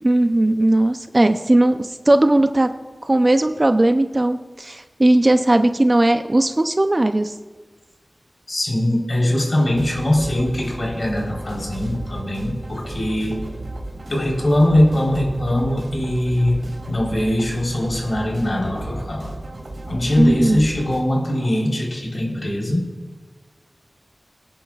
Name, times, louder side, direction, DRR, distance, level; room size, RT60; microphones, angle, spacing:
voice 1, 0.0-2.7 3.0-7.3 20.2-20.7, right 1 dB, 30° right, 8 dB, 0.6 m, -17 dB
voice 2, 8.5-13.4 14.1-16.6 16.9-19.4 19.9-22.8, left 1 dB, 55° left, -1 dB, 3.9 m, -21 dB
sound 1, 9.7-21.0, right 2 dB, 75° right, 3.7 m, -34 dB
23.0 x 10.0 x 2.4 m, 1.4 s
wide cardioid pair, 80°, 0 cm